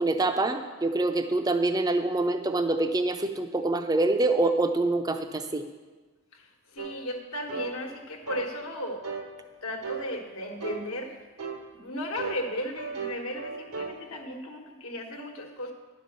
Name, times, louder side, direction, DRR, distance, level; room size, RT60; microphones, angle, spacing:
voice 1, 0.0-5.7, right 2 dB, 15° right, 8 dB, 0.4 m, -25 dB
voice 2, 6.3-9.0 9.6-11.2 11.7-15.7, equal, 70° left, 2 dB, 1.2 m, -35 dB
sound 1, 6.8-7.0 7.5-7.7 8.3-8.5 9.0-9.3 9.8-10.1 10.6-10.9 11.4-11.6 12.2-14.0, right 5 dB, 85° right, 1.1 m, -36 dB
10.5 x 5.3 x 6.6 m, 1.3 s
head